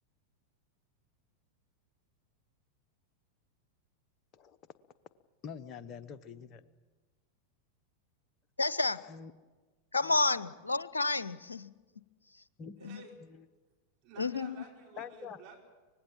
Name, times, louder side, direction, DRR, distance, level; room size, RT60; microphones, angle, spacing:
voice 1, 5.4-6.6 9.1-9.3 12.6-12.9 15.0-15.4, left 7 dB, 30° left, 1.0 m, -45 dB
voice 2, 8.6-9.0 9.9-11.7 12.8-13.0 14.2-14.6, left 3 dB, 80° left, 0.6 m, -30 dB
voice 3, 12.8-13.1 14.0-15.6, right 5 dB, 40° right, 5.0 m, -52 dB
24.5 x 19.5 x 7.3 m
figure-of-eight pair, 90°, 0 cm